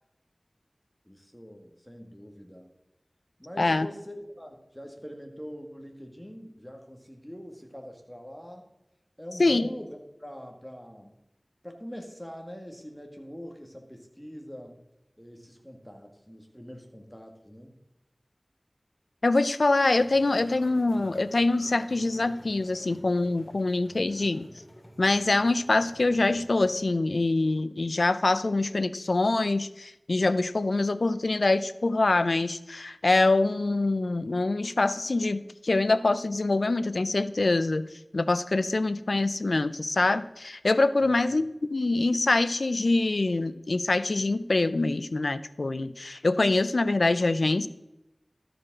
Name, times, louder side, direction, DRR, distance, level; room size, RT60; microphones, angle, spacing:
voice 1, 1.1-2.7 3.4-8.7 9.2-11.2 11.6-14.8 15.2-17.8 41.0-41.2, equal, 5° left, 3 dB, 1.9 m, -43 dB
voice 2, 19.2-24.5 25.0-37.9 38.1-41.4 41.7-47.7, left 2 dB, 85° left, 13 dB, 0.5 m, -25 dB
sound 1, 20.0-26.8, equal, 20° left, 2.5 m, -51 dB
13.0 x 5.1 x 6.0 m, 0.92 s
wide cardioid pair, 50°, 0 cm